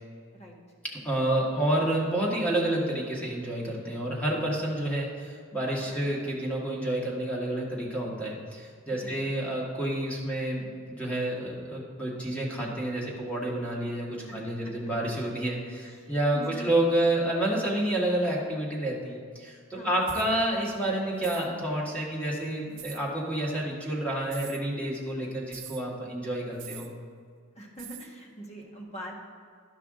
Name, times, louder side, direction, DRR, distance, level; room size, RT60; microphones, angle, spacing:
voice 1, 1.0-26.9, right 1 dB, 5° left, -4 dB, 1.6 m, -29 dB
voice 2, 5.9-6.2 8.9-9.3 14.3-14.4 14.6-14.7 15.8-16.8 19.7-20.0 27.5-29.2, equal, 30° left, -1 dB, 1.5 m, -43 dB
sound 1, 20.0-20.3 21.2-21.5 22.8-23.0 24.2-24.6 25.5-25.8 26.6-26.9 27.8-28.1, right 11 dB, 60° right, 0.6 m, -44 dB
12.0 x 5.7 x 3.8 m, 2.1 s
head